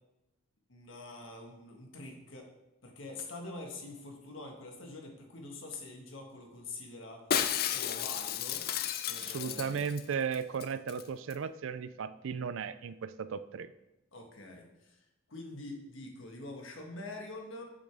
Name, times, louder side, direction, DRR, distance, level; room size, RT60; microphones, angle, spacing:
voice 1, 0.7-2.5 2.8-7.3 7.6-8.6 9.1-9.9 14.1-17.7, left 2 dB, 70° left, 2 dB, 1.4 m, -45 dB
Shatter, 7.3-10.0 10.3-10.4 10.6-11.0 11.3-11.4, left 9 dB, 45° left, 0.4 m, -33 dB
voice 2, 9.2-13.7, right 6 dB, 70° right, 14 dB, 0.4 m, -36 dB
8.5 x 6.3 x 3.4 m, 0.95 s
head